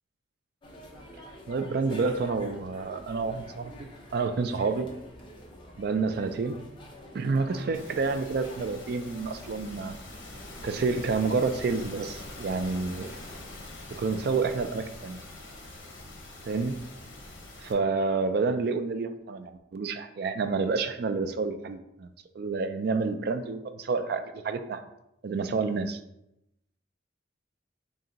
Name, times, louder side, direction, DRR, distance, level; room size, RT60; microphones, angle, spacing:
sound 1, 0.6-13.4, left 1 dB, 25° left, 0.5 m, -47 dB
voice 1, 1.5-3.7 4.1-4.9 5.8-6.6 7.1-9.9 10.6-13.1 14.0-15.2 16.5-16.8 17.6-22.1 22.4-24.8 25.2-26.0, right 4 dB, 55° right, 8 dB, 0.3 m, -29 dB
sound 2, 7.7-17.7, left 2 dB, 75° left, 0.7 m, -44 dB
3.8 x 2.5 x 3.9 m, 0.84 s
head